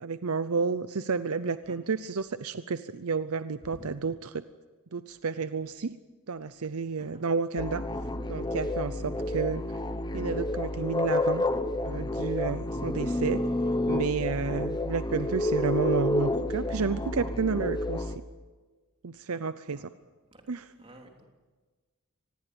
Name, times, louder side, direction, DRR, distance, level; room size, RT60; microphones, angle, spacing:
voice 1, 0.0-4.4 4.9-6.0 6.3-7.8 8.3-9.6 10.1-11.4 11.8-13.5 13.9-18.2 19.0-19.9 20.5-20.6, right 4 dB, 70° right, 13 dB, 0.7 m, -31 dB
voice 2, 3.6-3.9 7.0-7.2 9.1-9.4 19.8-19.9 20.3-20.4 20.8-21.2, right 1 dB, 25° right, 2 dB, 3.4 m, -50 dB
sound 1, 7.6-18.2, left 1 dB, 20° left, 1.0 m, -30 dB
25.5 x 20.5 x 7.9 m, 1.4 s
head